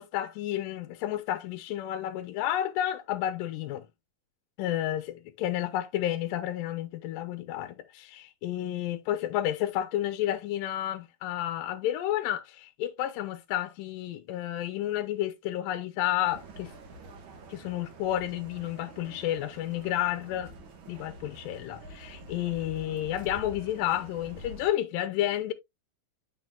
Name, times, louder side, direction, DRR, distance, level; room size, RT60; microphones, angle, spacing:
voice 1, 0.0-3.8 4.6-16.7 17.5-20.5 20.9-25.5, left 12 dB, 80° left, 2.1 m, -31 dB
sound 1, 16.2-24.7, right 1 dB, 80° right, 1.0 m, -47 dB
9.2 x 6.0 x 2.2 m
omnidirectional pair, 4.1 m